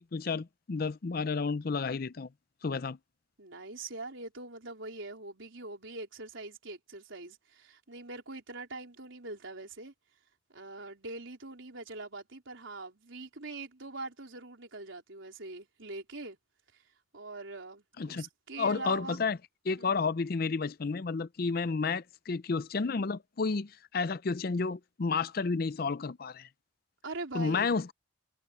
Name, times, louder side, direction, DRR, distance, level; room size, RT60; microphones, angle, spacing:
voice 1, 0.0-2.3 2.6-3.0 18.0-18.2 18.6-19.4 19.6-26.5 27.3-27.9, left 4 dB, 50° left, 0.5 m, -31 dB
voice 2, 3.4-9.9 10.5-16.4 17.1-19.2 19.8-20.0 27.0-27.7, right 2 dB, 80° right, 4.0 m, -43 dB
head